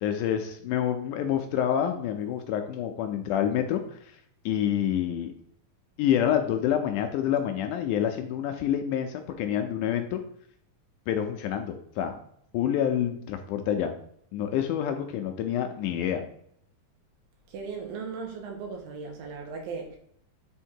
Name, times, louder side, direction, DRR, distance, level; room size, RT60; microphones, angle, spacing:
voice 1, 0.0-4.2 4.5-5.3 6.0-10.2 11.1-12.2 12.5-13.9 14.3-16.2, left 10 dB, 80° left, 1.9 m, -27 dB
voice 2, 17.5-20.0, right 5 dB, 85° right, 3.0 m, -37 dB
7.1 x 3.6 x 4.5 m
omnidirectional pair, 4.0 m